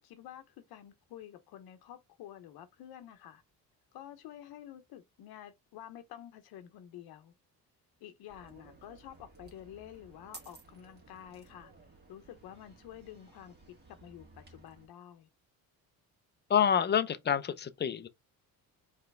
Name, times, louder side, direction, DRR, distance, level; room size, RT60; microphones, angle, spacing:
voice 1, 0.0-3.4 3.9-7.3 8.0-11.7 12.1-13.5 13.9-15.3, left 11 dB, 85° left, 0.8 m, -50 dB
sound 1, 8.3-14.9, right 3 dB, 25° right, 2.0 m, -56 dB
voice 2, 16.5-18.1, left 8 dB, 30° left, 0.6 m, -27 dB
4.6 x 3.2 x 3.3 m
cardioid pair, 130°, 37 cm